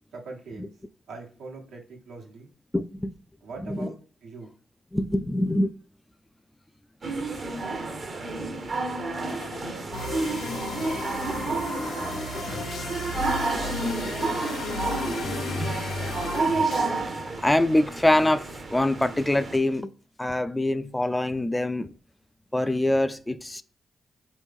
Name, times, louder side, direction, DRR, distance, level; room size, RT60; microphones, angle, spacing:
voice 1, 0.1-0.7 1.1-2.5 3.4-4.0 4.2-4.5, right 3 dB, 85° right, 1.2 m, -41 dB
voice 2, 2.7-3.1 3.7-3.9 4.9-5.7 17.4-19.9 20.2-21.9 22.5-23.6, left 1 dB, 15° left, 0.3 m, -24 dB
sound 1, 7.0-19.6, right 3 dB, 55° right, 0.8 m, -30 dB
sound 2, 9.2-10.7 11.2-14.7 14.9-15.0 15.2-17.2, left 3 dB, 70° left, 0.7 m, -43 dB
sound 3, 9.9-17.0, left 2 dB, 85° left, 1.1 m, -33 dB
4.1 x 3.1 x 3.5 m
supercardioid pair, 50°, 0 cm